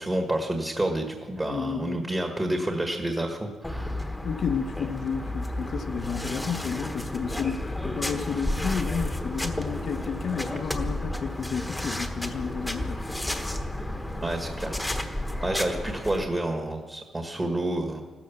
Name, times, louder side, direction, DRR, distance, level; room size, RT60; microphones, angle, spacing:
voice 1, 0.0-4.0 14.2-14.8 15.4-18.0, right 1 dB, 15° right, 1.5 m, -29 dB
voice 2, 1.5-2.0 4.2-13.0, left 6 dB, 50° left, 0.8 m, -31 dB
sound 1, 3.6-16.2, left 1 dB, 5° left, 1.2 m, -32 dB
15.5 x 13.0 x 7.0 m
cardioid pair, 155°, 0 cm